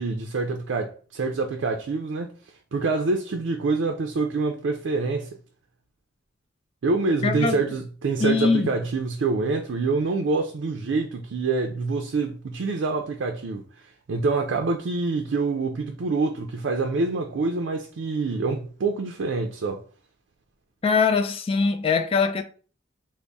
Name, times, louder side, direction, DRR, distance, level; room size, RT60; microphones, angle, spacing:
voice 1, 0.0-2.3 2.7-5.4 6.8-13.6 14.1-19.8, right 3 dB, 80° right, 0.4 m, -26 dB
voice 2, 7.2-7.6 8.2-8.7 20.8-22.4, left 5 dB, 30° left, 0.3 m, -22 dB
3.4 x 2.0 x 3.9 m
head